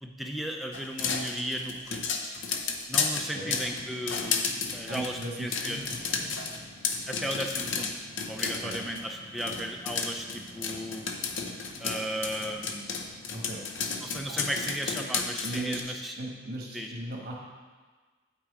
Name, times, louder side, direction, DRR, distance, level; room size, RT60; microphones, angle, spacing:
voice 1, 0.0-2.0 2.9-4.5 4.7-5.9 7.1-7.9 8.3-11.0 11.8-12.9 14.0-16.1 16.7-16.9, equal, ahead, 1 dB, 0.6 m, -35 dB
sound 1, 0.7-9.1 9.4-15.8, left 5 dB, 75° left, 0.7 m, -32 dB
sound 2, 3.4-14.0, equal, 55° left, 1.8 m, -51 dB
voice 2, 4.9-6.3 8.6-8.8 13.3-13.6 14.3-14.4 15.4-17.3, right 1 dB, 50° right, -2 dB, 1.3 m, -37 dB
8.6 x 6.0 x 4.8 m, 1.4 s
head